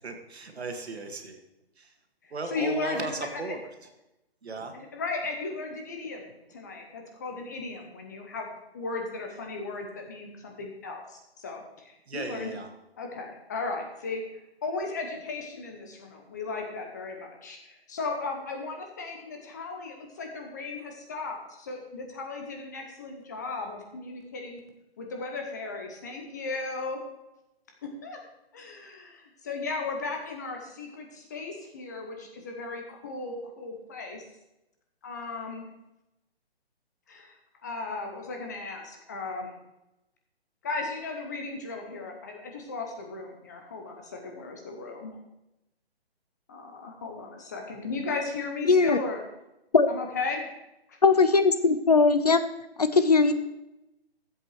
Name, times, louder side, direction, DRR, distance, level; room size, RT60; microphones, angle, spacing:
voice 1, 0.0-1.4 1.8-1.9 2.3-3.7 4.4-4.7 12.1-12.7, right 3 dB, 80° right, 5 dB, 2.1 m, -36 dB
voice 2, 2.2-3.6 4.7-8.5 8.7-12.6 13.0-24.6 25.0-27.0 28.0-28.2 28.5-34.2 35.0-35.7 37.1-37.3 37.6-39.6 40.6-45.2 46.5-49.2 49.9-50.5, left 3 dB, 15° left, 2 dB, 0.9 m, -36 dB
voice 3, 48.7-49.0 49.7-49.9 51.0-52.4 52.8-53.3, left 4 dB, 40° left, 12 dB, 0.5 m, -20 dB
13.0 x 8.1 x 4.7 m, 0.91 s
hypercardioid pair, 170°, 32 cm